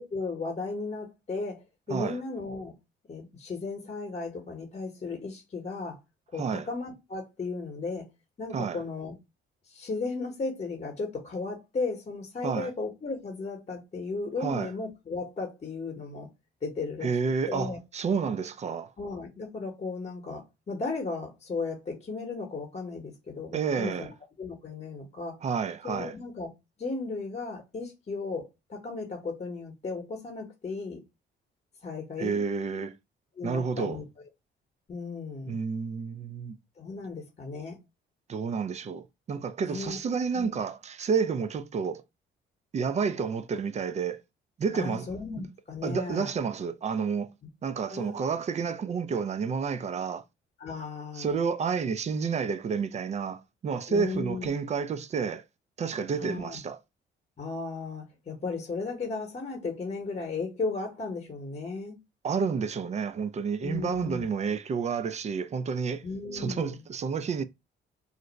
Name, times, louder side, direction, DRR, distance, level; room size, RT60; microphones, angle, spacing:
voice 1, 0.0-2.7 3.1-6.0 6.3-8.1 8.4-9.1 9.7-16.3 16.6-17.1 17.5-17.8 19.0-24.1 24.4-25.4 25.8-26.5 26.8-31.0 31.8-32.4 33.4-34.0 34.9-35.6 36.8-37.8 39.6-40.0 40.3-40.6 44.7-46.3 47.8-48.2 50.6-51.4 53.9-54.5 56.1-56.6 57.4-62.0 63.6-64.3 66.0-66.8, left 3 dB, 35° left, 0.9 m, -35 dB
voice 2, 6.3-6.7 8.5-8.8 12.4-12.7 14.4-14.7 17.0-18.9 23.5-24.1 25.4-26.1 32.2-33.0 33.4-34.0 35.5-36.5 38.3-42.0 42.7-44.2 44.6-45.1 45.8-47.3 47.6-50.2 51.2-55.4 55.8-56.8 62.2-66.0 66.3-67.4, right 5 dB, 35° right, 0.4 m, -30 dB
2.5 x 2.1 x 3.8 m
cardioid pair, 90°, 20 cm